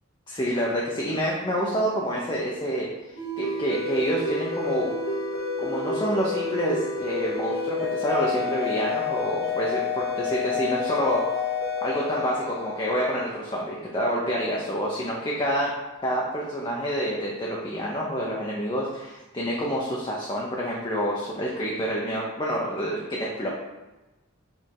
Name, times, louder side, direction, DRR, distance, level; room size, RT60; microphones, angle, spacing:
voice 1, 0.3-4.9 5.6-11.2 11.8-15.7 16.0-23.5, equal, 25° left, -4 dB, 0.8 m, -28 dB
sound 1, 3.2-13.5, left 4 dB, 80° left, 1.9 m, -29 dB
5.3 x 3.5 x 5.4 m, 1.1 s
head